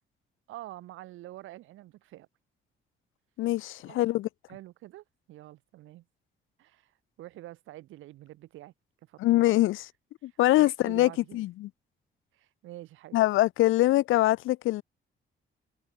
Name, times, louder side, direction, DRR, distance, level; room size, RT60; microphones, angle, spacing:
voice 1, 0.5-2.3 3.9-4.0 4.5-6.0 6.6-6.9 7.2-8.7 9.1-9.4 10.6-11.4 12.3-13.2, right 16 dB, 85° right, 1.7 m, -46 dB
voice 2, 3.4-4.3 9.2-9.9 10.2-11.7 13.1-14.8, left 16 dB, 85° left, 0.8 m, -24 dB
cardioid pair, 90°, 20 cm